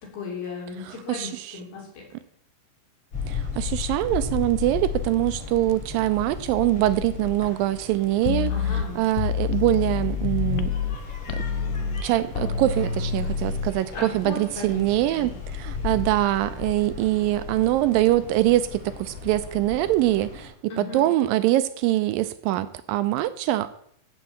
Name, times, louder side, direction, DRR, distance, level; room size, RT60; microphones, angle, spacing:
voice 1, 0.0-2.0 8.5-9.0 13.9-15.4 20.7-21.0, left 4 dB, 75° left, -2 dB, 5.0 m, -36 dB
voice 2, 0.9-1.3 3.3-10.7 12.0-23.8, right 15 dB, 80° right, 12 dB, 2.2 m, -23 dB
sound 1, 3.1-20.5, left 6 dB, 40° left, 6.7 m, -36 dB
sound 2, 8.2-11.0 11.3-13.7, left 6 dB, 90° left, 1.6 m, -27 dB
15.0 x 5.4 x 7.2 m, 0.66 s
omnidirectional pair, 4.2 m